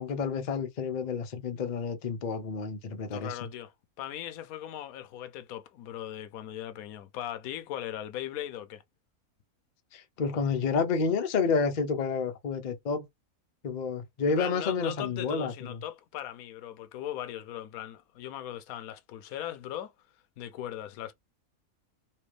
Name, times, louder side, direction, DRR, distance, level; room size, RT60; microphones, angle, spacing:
voice 1, 0.0-3.4 9.9-13.1 13.6-15.8, left 5 dB, 45° left, 0.6 m, -30 dB
voice 2, 3.1-3.7 4.0-8.8 14.3-19.9 20.4-21.1, left 11 dB, 75° left, 1.0 m, -39 dB
3.2 x 3.0 x 3.2 m
omnidirectional pair, 1.6 m